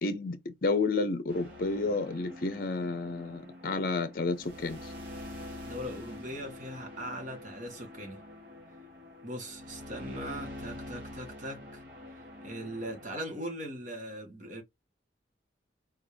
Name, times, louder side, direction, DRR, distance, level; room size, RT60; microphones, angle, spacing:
voice 1, 0.0-4.9, left 3 dB, 50° left, 0.6 m, -31 dB
sound 1, 1.3-13.0, left 1 dB, 80° right, 2.6 m, -46 dB
voice 2, 5.6-8.2 9.2-11.8 12.4-14.6, equal, 45° right, 1.9 m, -40 dB
4.3 x 3.6 x 3.4 m
head